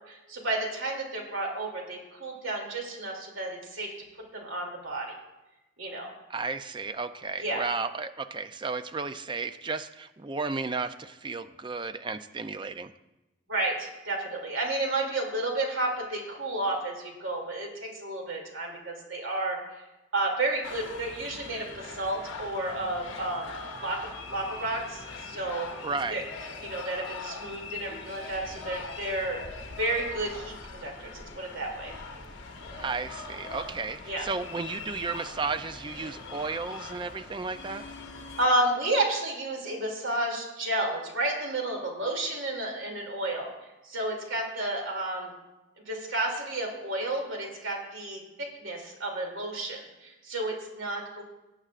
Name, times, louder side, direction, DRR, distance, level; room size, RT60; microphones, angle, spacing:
voice 1, 0.0-3.9 4.3-5.1 5.8-6.1 7.4-7.7 13.5-19.6 20.1-23.5 23.8-24.0 24.3-25.7 26.1-26.2 26.6-29.4 29.8-31.9 34.1-34.3 38.4-43.5 43.8-45.3 45.9-51.2, right 2 dB, 75° right, 0 dB, 2.7 m, -31 dB
voice 2, 6.3-12.9 25.8-26.2 32.7-37.8, right 4 dB, 25° right, 11 dB, 0.4 m, -33 dB
sound 1, 20.6-38.5, left 3 dB, 65° left, 1.2 m, -42 dB
18.0 x 8.8 x 2.5 m, 1.0 s
head